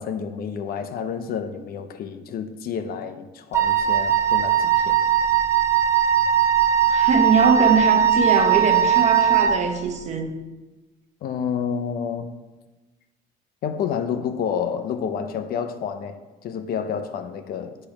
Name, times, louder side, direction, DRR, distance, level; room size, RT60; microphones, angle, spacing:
voice 1, 0.0-5.0 11.2-12.3 13.6-16.2 16.4-17.9, left 7 dB, 60° left, 0.7 m, -29 dB
Wind instrument woodwind instrument, 3.5-9.6, right 9 dB, 15° right, 0.7 m, -19 dB
voice 2, 6.9-10.3, right 5 dB, 40° right, 1.0 m, -22 dB
8.2 x 3.4 x 5.9 m
cardioid pair, 110°, 17 cm